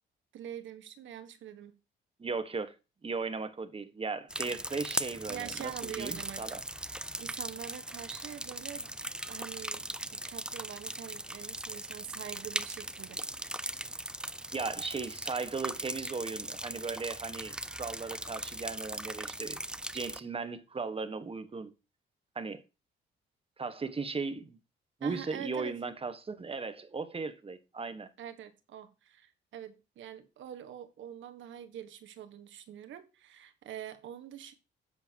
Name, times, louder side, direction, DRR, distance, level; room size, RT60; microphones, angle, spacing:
voice 1, 0.3-1.7 4.4-4.6 5.3-6.5 7.2-9.0 9.3-13.2 25.0-25.7 28.2-34.5, right 10 dB, 75° right, 1.5 m, -45 dB
voice 2, 2.2-2.7 3.0-6.6 14.5-19.6 19.9-21.7 22.3-22.6 23.6-24.6 25.0-28.1, right 4 dB, 30° right, 1.4 m, -37 dB
sound 1, 4.3-20.2, right 1 dB, 5° right, 0.5 m, -39 dB
10.0 x 8.6 x 2.9 m
cardioid pair, 90°, 20 cm